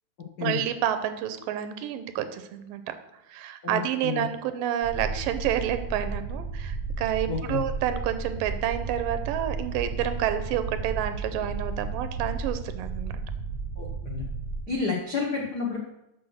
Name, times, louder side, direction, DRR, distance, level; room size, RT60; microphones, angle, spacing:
voice 1, 0.4-2.9 3.3-13.1 14.7-14.8, right 10 dB, 90° right, 10 dB, 2.4 m, -29 dB
voice 2, 3.6-4.2 7.3-7.6 13.8-14.2 14.7-15.8, left 5 dB, 90° left, -2 dB, 0.8 m, -30 dB
sound 1, 4.8-14.6, right 4 dB, 15° left, 2.1 m, -33 dB
7.4 x 6.3 x 6.3 m, 0.89 s
omnidirectional pair, 3.8 m